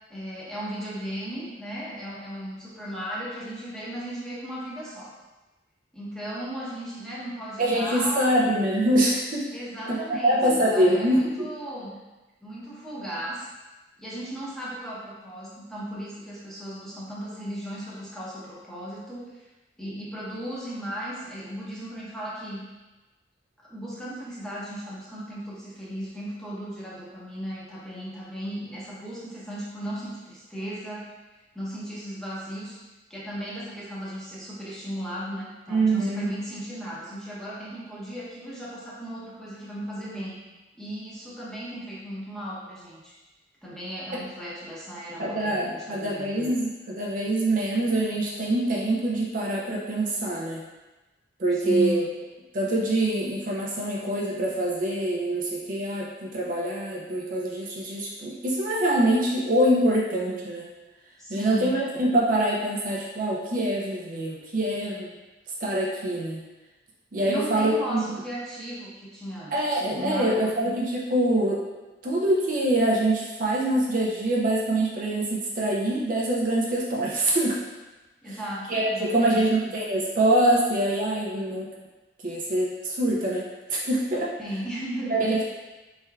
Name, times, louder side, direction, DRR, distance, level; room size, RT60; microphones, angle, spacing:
voice 1, 0.1-5.2 5.9-8.3 9.5-12.0 12.4-13.5 14.0-19.5 19.8-22.7 23.6-31.1 31.5-32.8 33.1-40.4 40.8-43.2 43.6-46.6 51.5-52.0 61.2-61.8 67.2-70.4 78.2-79.4 84.4-85.3, equal, 5° left, -8 dB, 0.7 m, -36 dB
voice 2, 7.6-9.4 9.9-10.0 10.2-11.5 35.7-36.3 45.2-50.6 51.4-52.1 52.5-60.7 61.3-65.1 65.6-66.4 67.1-68.2 69.5-71.6 72.0-77.6 78.7-81.7 82.2-83.4 83.7-84.3 85.1-85.4, right 1 dB, 45° right, -3 dB, 0.5 m, -24 dB
4.4 x 3.3 x 2.3 m, 1.1 s
head